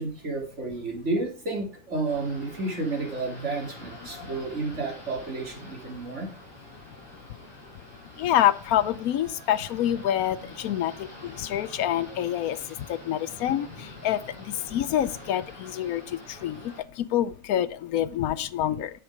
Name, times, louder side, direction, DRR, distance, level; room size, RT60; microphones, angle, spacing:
voice 1, 0.0-6.3, right 3 dB, 50° right, 1 dB, 3.1 m, -31 dB
sound 1, 2.0-16.8, left 1 dB, 15° left, 6.1 m, -46 dB
voice 2, 8.2-10.9 11.2-12.6 12.9-13.7 14.0-14.2 14.7-16.0 16.4-16.6 17.1-18.9, left 11 dB, 75° left, 16 dB, 1.1 m, -26 dB
10.0 x 7.3 x 4.9 m, 0.39 s
omnidirectional pair, 1.6 m